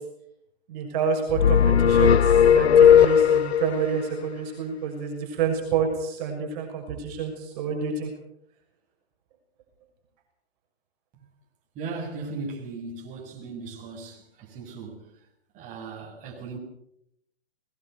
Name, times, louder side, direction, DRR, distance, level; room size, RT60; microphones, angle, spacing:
voice 1, 0.7-8.1, right 6 dB, 40° right, 1 dB, 6.5 m, -28 dB
sound 1, 1.3-3.8, left 8 dB, 85° left, 1.0 m, -16 dB
voice 2, 11.8-15.0 15.5-16.6, right 4 dB, 25° right, -1 dB, 7.1 m, -37 dB
21.0 x 20.5 x 7.0 m, 0.76 s
hypercardioid pair, 145°, 31 cm